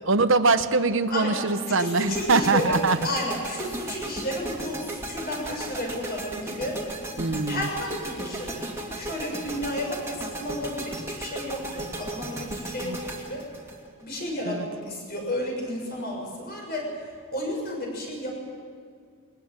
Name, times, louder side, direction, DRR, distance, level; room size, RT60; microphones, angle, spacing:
voice 1, 0.0-3.0 7.2-7.7 12.8-13.0 14.5-14.7, right 3 dB, 60° right, 10 dB, 0.9 m, -23 dB
voice 2, 1.1-2.8 3.0-6.8 7.5-13.4 14.0-16.9 17.3-18.4, left 1 dB, 45° left, 0 dB, 6.8 m, -32 dB
sound 1, 2.1-14.3, right 1 dB, 10° right, 2.4 m, -36 dB
22.5 x 19.0 x 8.9 m, 2.1 s
head